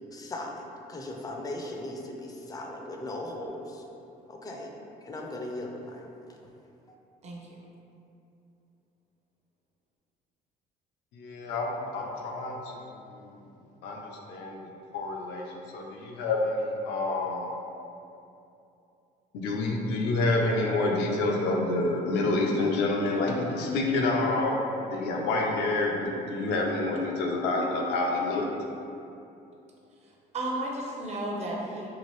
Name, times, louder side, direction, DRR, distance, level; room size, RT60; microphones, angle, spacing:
voice 1, 0.1-3.8 4.3-4.7 5.0-6.4 6.9-7.0, left 1 dB, 20° left, 1 dB, 0.4 m, -38 dB
voice 2, 7.2-7.6 30.3-31.9, right 1 dB, 40° right, -2 dB, 0.6 m, -33 dB
voice 3, 11.1-12.6 13.1-13.4 13.8-14.6 14.9-17.5 19.3-24.6 24.9-28.5, left 2 dB, 85° left, 0 dB, 0.5 m, -28 dB
2.8 x 2.5 x 3.1 m, 2.8 s
cardioid pair, 110°, 17 cm